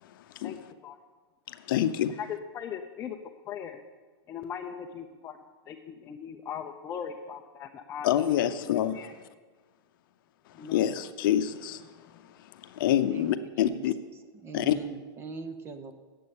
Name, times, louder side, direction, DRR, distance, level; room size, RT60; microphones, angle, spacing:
voice 1, 0.0-0.5 1.5-2.2 8.0-9.0 10.6-11.9 12.2-13.9 14.5-14.7, left 11 dB, 55° left, 0.7 m, -27 dB
voice 2, 2.2-3.2 3.5-3.8 4.3-5.4 5.7-8.5 8.9-9.1 10.5-10.9, left 8 dB, 20° left, 0.5 m, -39 dB
voice 3, 14.4-15.9, right 5 dB, 15° right, 0.7 m, -41 dB
8.1 x 7.6 x 8.8 m
hypercardioid pair, 150°, 13 cm